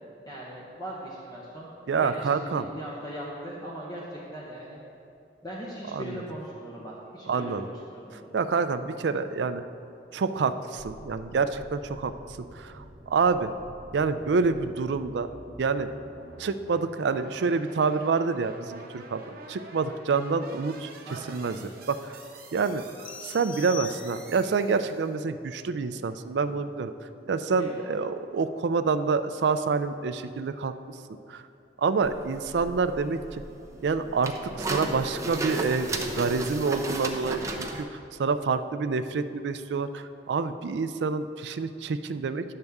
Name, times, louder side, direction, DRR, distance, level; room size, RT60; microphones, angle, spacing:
voice 1, 0.2-4.8 5.4-8.3 21.0-21.7 27.6-27.9, equal, 20° left, -6 dB, 0.9 m, -40 dB
voice 2, 1.9-2.7 5.9-6.2 7.3-7.6 8.3-9.6 10.1-12.1 12.5-13.5 13.9-15.3 15.6-15.9 16.4-20.9 21.3-21.6 21.9-22.2 22.5-22.8 23.2-26.9 27.3-30.7 31.3-31.4 31.8-33.4 33.8-42.4, right 4 dB, 70° right, 10 dB, 0.4 m, -27 dB
sound 1, 10.8-25.2, right 2 dB, 55° right, 0.9 m, -48 dB
sound 2, 23.0-24.6, left 10 dB, 50° left, 0.5 m, -42 dB
sound 3, 32.0-37.8, right 2 dB, 15° right, 0.6 m, -34 dB
10.5 x 6.7 x 3.5 m, 2.7 s
head